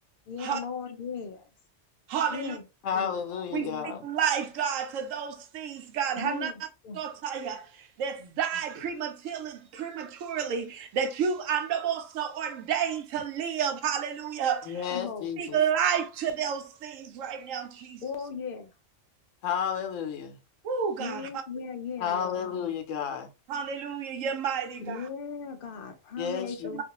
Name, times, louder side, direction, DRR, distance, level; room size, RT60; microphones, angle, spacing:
voice 1, 0.3-1.5 2.3-2.6 2.9-3.2 3.6-4.0 6.2-6.5 6.8-7.0 14.9-15.3 18.0-18.7 21.0-22.4 24.8-26.8, left 5 dB, 55° left, 0.6 m, -37 dB
voice 2, 2.1-2.6 3.5-3.7 4.0-6.5 6.9-14.7 15.4-18.0 20.6-21.3 23.5-25.0 26.7-26.8, right 7 dB, 85° right, 1.0 m, -30 dB
voice 3, 2.8-4.0 14.7-15.6 19.4-20.4 22.0-23.3 26.2-26.7, left 7 dB, 80° left, 1.0 m, -31 dB
2.5 x 2.3 x 2.8 m
omnidirectional pair, 1.3 m